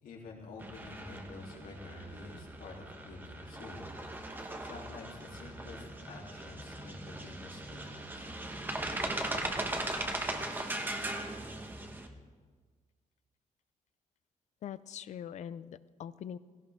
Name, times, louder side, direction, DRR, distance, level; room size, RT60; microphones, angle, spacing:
voice 1, 0.0-3.9 4.6-8.3, left 3 dB, 90° left, -2 dB, 3.0 m, -49 dB
sound 1, 0.6-12.1, right 1 dB, 15° right, 1.0 m, -39 dB
voice 2, 14.6-16.4, left 9 dB, 55° left, 16 dB, 0.5 m, -42 dB
17.0 x 16.5 x 3.6 m, 1.5 s
wide cardioid pair, 175°, 14 cm